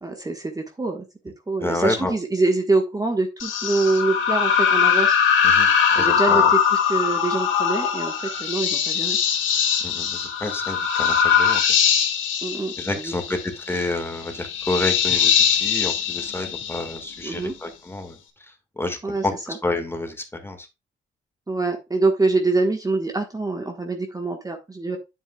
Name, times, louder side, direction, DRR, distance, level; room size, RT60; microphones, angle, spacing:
voice 1, 0.0-1.0 1.5-5.2 5.9-6.4 6.7-9.2 12.4-13.1 17.2-17.5 19.0-19.6 21.5-25.0, right 3 dB, 20° right, 3 dB, 1.3 m, -25 dB
voice 2, 1.6-2.1 5.4-6.5 9.8-11.6 12.8-18.2 18.4-20.7, left 2 dB, 10° left, 6 dB, 1.8 m, -29 dB
sound 1, 3.4-17.3, left 7 dB, 80° left, 2.0 m, -21 dB
9.0 x 7.8 x 2.3 m, 0.24 s
cardioid pair, 90°, 20 cm